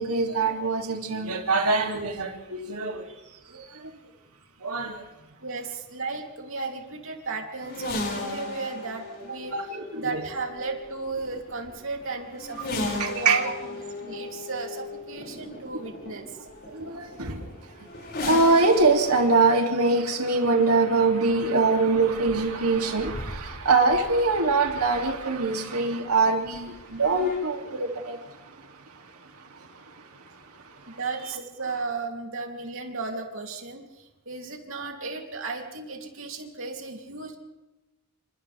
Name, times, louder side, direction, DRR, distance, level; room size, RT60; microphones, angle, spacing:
voice 1, 0.0-3.0 4.6-5.0 9.5-10.2 13.0-13.4 16.7-17.4 18.2-28.2, right 3 dB, 80° right, 2 dB, 3.0 m, -23 dB
voice 2, 5.2-9.6 9.9-16.3 30.9-37.4, right 3 dB, 60° right, 1 dB, 3.3 m, -34 dB
sound 1, 7.6-25.4 26.4-27.4, left 2 dB, 45° left, 6.4 m, -38 dB
29.0 x 27.5 x 3.6 m, 1.0 s
head